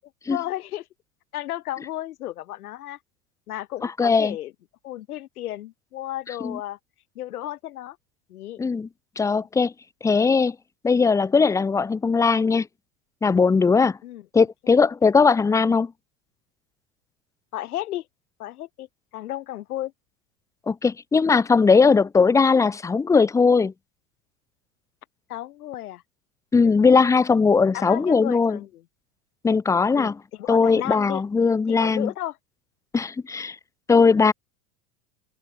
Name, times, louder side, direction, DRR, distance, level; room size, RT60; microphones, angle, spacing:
voice 1, 0.3-0.9 1.3-3.0 3.5-4.5 4.8-6.8 7.1-8.0 8.3-8.6 14.0-14.7 17.5-18.1 18.4-18.9 19.1-19.9 25.3-26.0 26.8-26.9 27.7-28.8 29.9-31.2 31.7-32.4, left 14 dB, 75° left, 3.3 m, -33 dB
voice 2, 4.0-4.4 6.4-6.6 8.6-8.9 9.2-9.7 10.0-10.6 10.8-12.7 13.2-14.0 14.3-15.9 20.7-23.7 26.5-28.6 29.4-30.1 30.5-32.1 32.9-33.6 33.9-34.3, left 4 dB, 10° left, 0.4 m, -19 dB
hypercardioid pair, 95°, 44 cm